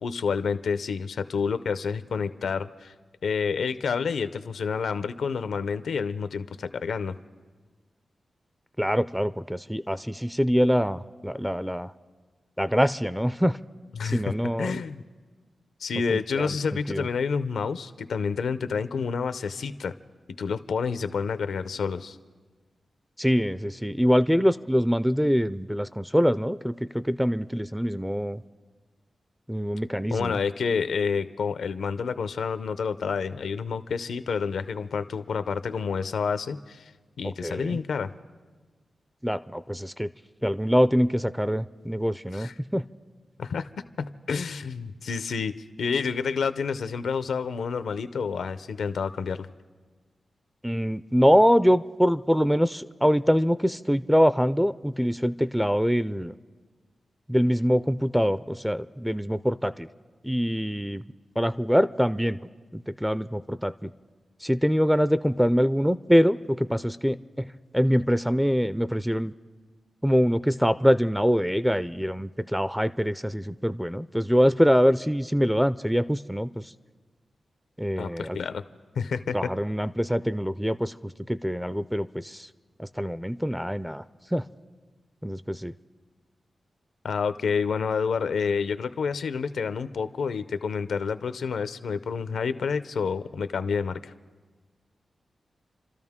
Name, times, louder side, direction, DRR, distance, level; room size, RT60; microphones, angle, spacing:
voice 1, 0.0-2.9 3.2-7.1 14.0-14.3 14.6-15.0 15.8-19.9 20.4-22.2 30.1-36.9 37.2-38.1 42.3-42.5 43.4-43.7 44.3-45.5 45.8-49.5 78.0-78.6 79.0-79.4 87.0-94.1, left 5 dB, 85° left, 12 dB, 0.6 m, -29 dB
voice 2, 8.8-11.9 12.6-13.6 14.0-14.8 16.1-16.6 16.9-17.1 23.2-28.4 29.5-30.3 37.4-37.8 39.2-40.1 40.4-42.9 50.6-56.3 57.3-59.9 60.2-61.0 61.4-62.4 62.7-63.9 64.4-69.3 70.0-76.6 77.8-78.4 79.3-80.9 81.3-82.5 82.8-84.0 84.3-84.4 85.2-85.7, equal, 5° right, 14 dB, 0.4 m, -24 dB
30.0 x 13.0 x 3.6 m, 1.4 s
cardioid pair, 75°, 0 cm